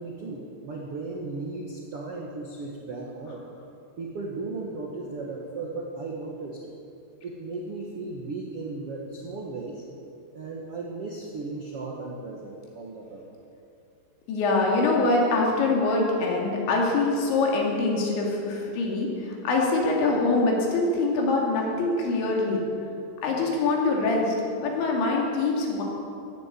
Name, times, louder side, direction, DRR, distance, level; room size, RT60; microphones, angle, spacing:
voice 1, 0.0-3.5 4.0-6.6 7.2-9.8 10.3-13.3, right 3 dB, 75° right, -1 dB, 1.3 m, -36 dB
voice 2, 14.3-22.6 23.2-25.8, left 3 dB, 80° left, -1 dB, 4.9 m, -24 dB
14.5 x 11.5 x 8.5 m, 2.6 s
omnidirectional pair, 5.2 m